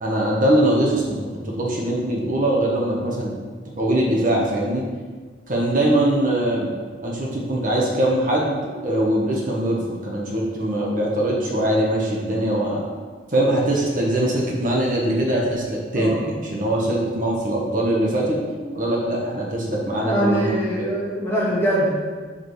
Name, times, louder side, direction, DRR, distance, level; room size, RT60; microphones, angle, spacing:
voice 1, 0.0-3.3 3.8-4.8 5.5-6.7 7.0-8.6 8.8-12.9 13.3-18.4 18.7-20.5 20.8-20.9, right 1 dB, 40° right, -3 dB, 1.1 m, -22 dB
voice 2, 15.9-16.3 16.9-17.0 18.5-18.7 19.8-21.9, equal, 15° left, -6 dB, 1.5 m, -23 dB
5.0 x 4.9 x 6.3 m, 1.5 s
head